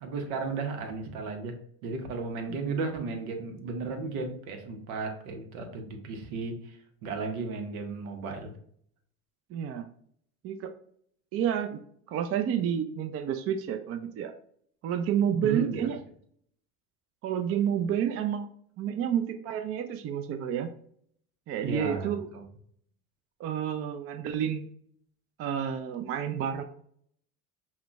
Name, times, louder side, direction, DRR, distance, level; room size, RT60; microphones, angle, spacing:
voice 1, 0.0-1.6 1.8-8.5 15.4-15.9 21.6-22.4, right 4 dB, 80° right, 5 dB, 0.8 m, -34 dB
voice 2, 9.5-9.9 10.4-10.7 11.3-11.8 12.1-14.3 14.8-16.0 17.2-18.5 18.8-20.7 21.5-22.3 23.4-24.7 25.4-26.6, right 9 dB, 35° right, 8 dB, 0.4 m, -30 dB
5.7 x 2.1 x 2.2 m, 0.62 s
hypercardioid pair, 70°, 42 cm